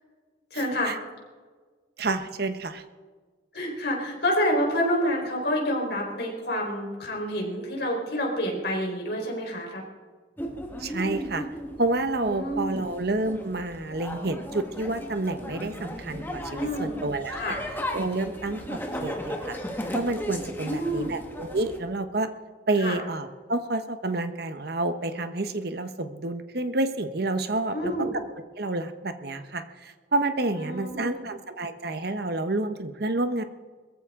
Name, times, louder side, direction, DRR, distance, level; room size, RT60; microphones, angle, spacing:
voice 1, 0.5-0.9 3.5-9.8 12.2-12.8 16.5-17.0 17.3-17.6 20.6-21.1 22.8-23.0 27.7-28.1 30.5-31.3, equal, 55° left, -1 dB, 4.3 m, -28 dB
voice 2, 2.0-2.8 10.8-11.5 11.8-17.6 17.9-19.6 19.9-22.3 22.7-28.1 28.6-33.4, right 2 dB, 55° right, 9 dB, 1.0 m, -29 dB
sound 1, 10.4-21.8, equal, 10° left, 1.5 m, -36 dB
21.5 x 14.5 x 3.8 m, 1.5 s
head